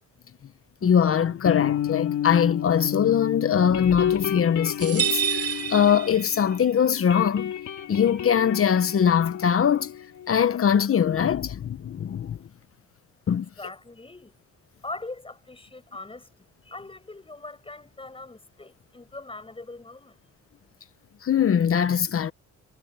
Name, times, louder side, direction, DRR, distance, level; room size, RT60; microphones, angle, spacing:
sound 1, 0.8-6.6 6.9-10.3, left 10 dB, 70° left, 3.1 m, -31 dB
voice 1, 0.8-7.5 7.9-9.9 10.3-12.4 13.3-13.5 21.2-22.3, left 8 dB, 45° left, 1.2 m, -22 dB
sound 2, 4.8-6.7, right 9 dB, 50° right, 3.2 m, -28 dB
voice 2, 13.6-14.3 14.8-20.2, left 2 dB, 20° left, 7.5 m, -41 dB
cardioid pair, 90°, 30 cm